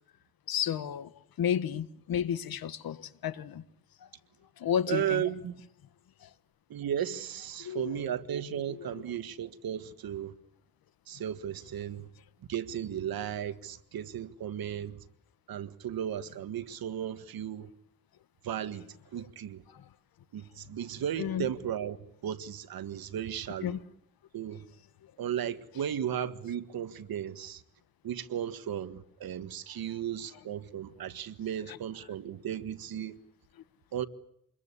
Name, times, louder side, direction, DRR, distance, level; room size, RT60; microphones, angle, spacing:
voice 1, 0.5-1.1 1.4-3.6 4.6-5.2 6.2-6.3 7.6-7.9 21.2-21.5 23.6-23.8, left 9 dB, 75° left, 1.6 m, -31 dB
voice 2, 4.9-5.6 6.7-10.3 11.1-12.1 12.5-15.1 15.5-17.7 18.4-19.6 20.3-23.8 24.3-24.7 25.2-27.6 28.0-33.2 33.9-34.0, right 9 dB, 75° right, 1.8 m, -35 dB
27.5 x 22.0 x 8.4 m
cardioid pair, 105°, 36 cm